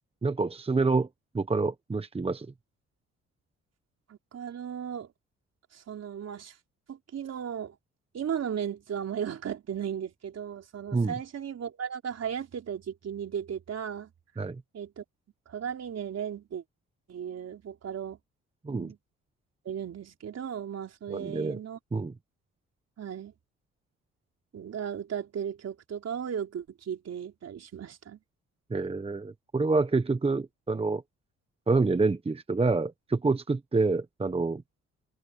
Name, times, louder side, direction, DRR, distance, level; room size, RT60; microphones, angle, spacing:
voice 1, 0.2-1.1 1.3-2.5 10.9-11.1 14.4-14.6 18.6-18.9 21.1-21.6 21.9-22.1 28.7-31.0 31.7-34.6, right 3 dB, 20° right, 1.1 m, -27 dB
voice 2, 4.1-5.1 5.7-6.6 6.9-7.8 8.1-14.1 14.7-15.0 15.5-16.6 17.1-18.2 18.7-19.0 19.6-21.8 23.0-23.3 24.5-28.2, right 8 dB, 55° right, 4.3 m, -36 dB
cardioid pair, 90°, 30 cm